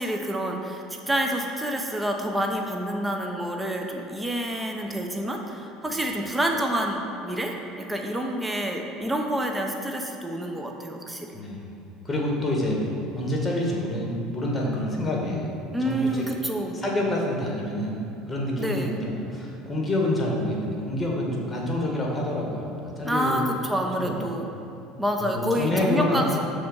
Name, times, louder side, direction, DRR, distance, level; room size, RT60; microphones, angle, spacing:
voice 1, 0.0-11.3 15.7-16.8 18.6-18.9 23.0-24.5 25.0-26.4, equal, 10° right, 2 dB, 0.6 m, -28 dB
voice 2, 12.0-15.5 15.8-16.2 16.7-18.0 18.3-23.4 24.0-24.4 25.2-26.3, left 1 dB, 15° left, -2 dB, 1.4 m, -27 dB
6.5 x 3.5 x 5.3 m, 2.7 s
supercardioid pair, 85°, 0 cm